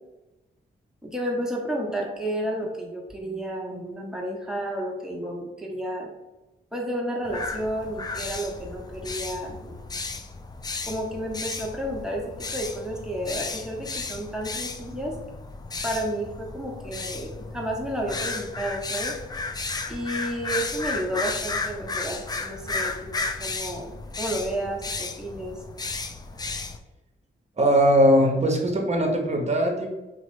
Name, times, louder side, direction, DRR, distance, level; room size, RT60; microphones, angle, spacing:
voice 1, 1.0-6.1 6.7-9.8 10.9-12.2 12.5-15.1 15.8-19.2 19.9-23.1 23.4-23.9 24.2-25.6, right 1 dB, 5° right, -1 dB, 0.9 m, -31 dB
sound 1, 7.3-26.8, left 3 dB, 20° left, 0.3 m, -34 dB
voice 2, 27.6-29.9, equal, 30° right, 2 dB, 0.8 m, -20 dB
2.9 x 2.1 x 3.1 m, 1.0 s
supercardioid pair, 40°, 21 cm